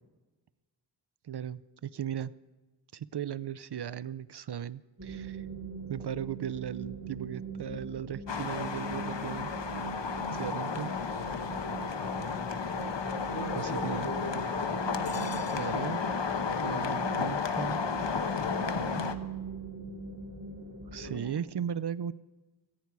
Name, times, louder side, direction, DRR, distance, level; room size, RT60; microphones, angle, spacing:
voice 1, 1.2-2.3 2.9-5.5 5.9-9.5 10.3-10.9 13.6-14.1 15.5-16.2 16.6-17.8 20.9-22.1, right 9 dB, 65° right, 18 dB, 0.5 m, -37 dB
sound 1, 5.0-21.2, right 4 dB, 40° right, 3.4 m, -41 dB
sound 2, 8.3-19.1, left 5 dB, 75° left, 1.0 m, -33 dB
voice 2, 10.5-10.9 11.9-12.9 13.2-14.8 21.0-21.3, left 2 dB, 55° left, -2 dB, 4.9 m, -42 dB
18.0 x 15.0 x 4.7 m, 1.2 s
wide cardioid pair, 45°, 43 cm